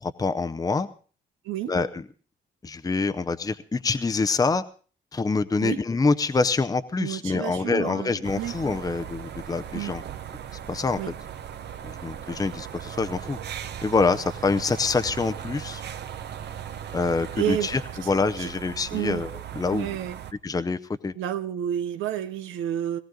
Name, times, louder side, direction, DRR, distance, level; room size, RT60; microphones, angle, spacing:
voice 1, 0.0-0.9 1.7-2.0 2.6-4.6 5.1-10.0 10.7-11.0 11.8-13.4 13.8-15.8 16.9-17.8 18.1-19.3 19.5-20.0 20.4-20.8 21.0-21.1, left 4 dB, 20° left, 0.7 m, -25 dB
voice 2, 7.0-8.5 9.7-9.9 11.0-11.1 17.4-17.8 18.4-18.5 18.9-19.2 19.7-20.2 21.2-23.0, right 11 dB, 90° right, 0.7 m, -30 dB
sound 1, 8.2-20.3, right 9 dB, 60° right, 0.9 m, -38 dB
18.5 x 14.5 x 3.9 m
cardioid pair, 90°, 20 cm